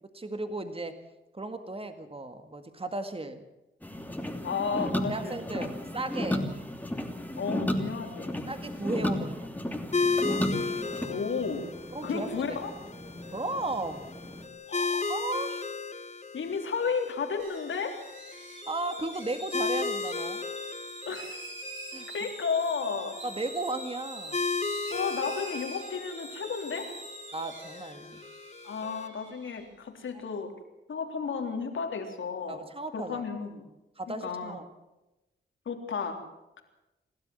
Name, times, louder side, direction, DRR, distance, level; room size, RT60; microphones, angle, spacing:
voice 1, 0.1-1.0 1.3-3.4 5.1-6.5 8.5-9.5 11.1-11.2 11.9-12.3 13.3-14.1 15.1-15.7 18.7-20.4 21.9-22.1 23.2-24.4 27.3-28.2 32.5-33.2 34.0-34.6, right 2 dB, 30° right, 8 dB, 2.0 m, -35 dB
sound 1, 3.8-14.5, left 1 dB, 10° left, 3.1 m, -34 dB
voice 2, 4.4-5.7 7.4-8.5 11.1-11.7 12.0-12.7 14.7-15.1 16.3-17.9 21.0-21.4 22.1-23.2 24.9-26.9 28.6-30.5 30.9-32.6 32.9-33.6 34.1-34.5 35.6-36.2, left 5 dB, 80° left, 5 dB, 3.5 m, -33 dB
sound 2, 9.9-29.1, left 4 dB, 35° left, 1.5 m, -36 dB
sound 3, 17.4-29.6, right 2 dB, 70° right, 7.5 m, -44 dB
28.5 x 12.5 x 7.8 m, 0.98 s
cardioid pair, 65°, 20 cm